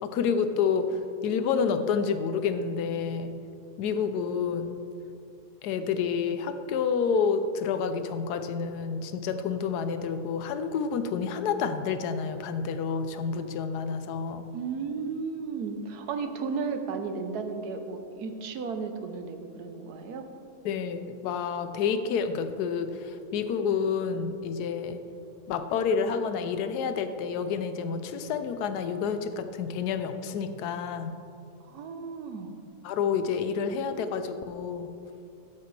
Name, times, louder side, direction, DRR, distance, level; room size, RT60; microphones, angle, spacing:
voice 1, 0.0-3.4 3.8-4.8 5.6-14.5 20.6-25.0 25.5-31.2 32.8-34.9, left 6 dB, 85° left, 9 dB, 1.2 m, -29 dB
voice 2, 14.5-20.3 31.6-32.5, right 5 dB, 80° right, 7 dB, 1.4 m, -34 dB
14.0 x 10.0 x 3.3 m, 2.6 s
omnidirectional pair, 1.7 m